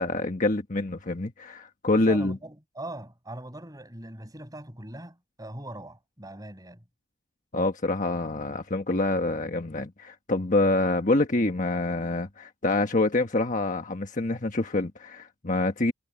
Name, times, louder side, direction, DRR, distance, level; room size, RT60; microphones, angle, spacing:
voice 1, 0.0-2.4 7.5-15.9, left 2 dB, 35° left, 1.4 m, -26 dB
voice 2, 1.9-6.8, right 1 dB, 15° right, 7.4 m, -41 dB
head